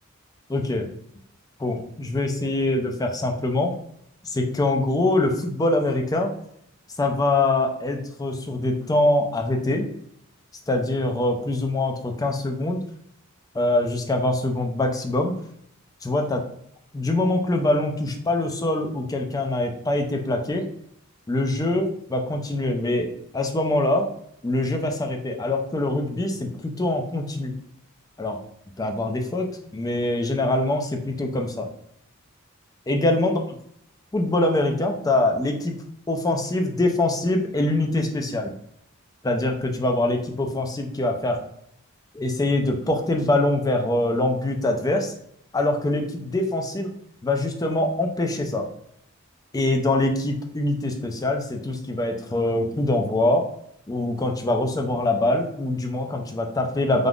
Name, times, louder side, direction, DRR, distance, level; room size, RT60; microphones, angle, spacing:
voice 1, 0.5-0.9 1.6-3.8 4.2-6.3 7.0-9.9 10.7-12.8 13.5-15.4 16.0-16.4 16.9-20.7 21.3-24.1 24.4-27.5 28.2-28.4 28.8-31.7 32.9-33.4 34.1-35.8 36.1-38.5 39.2-41.5 42.1-45.1 45.5-46.9 47.2-48.7 49.5-53.5 53.9-57.1, left 2 dB, 15° left, 3 dB, 0.3 m, -24 dB
2.5 x 2.3 x 3.4 m, 0.71 s
head